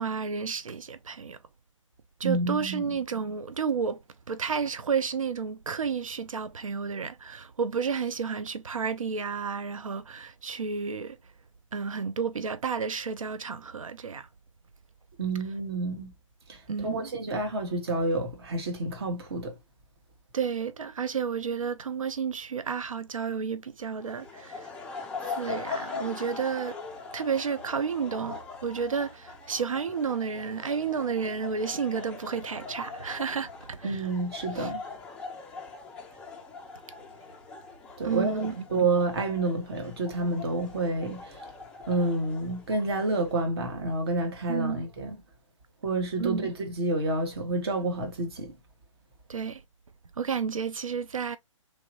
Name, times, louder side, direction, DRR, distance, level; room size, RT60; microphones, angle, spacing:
voice 1, 0.0-1.4 2.2-4.0 4.3-11.2 11.7-14.3 16.7-17.1 20.3-24.7 25.3-26.8 27.1-34.1 34.5-34.7 38.0-38.6 44.5-44.9 46.2-46.5 49.3-49.6 50.2-51.4, right 6 dB, 80° right, 0.5 m, -31 dB
voice 2, 2.2-3.0 15.2-16.1 16.5-19.5 33.8-34.8 38.0-41.5 41.9-45.1 45.8-48.5, right 2 dB, 50° right, 1.2 m, -29 dB
sound 1, 24.0-43.3, left 4 dB, 5° left, 0.3 m, -41 dB
3.2 x 2.6 x 2.8 m
figure-of-eight pair, 135°, 17 cm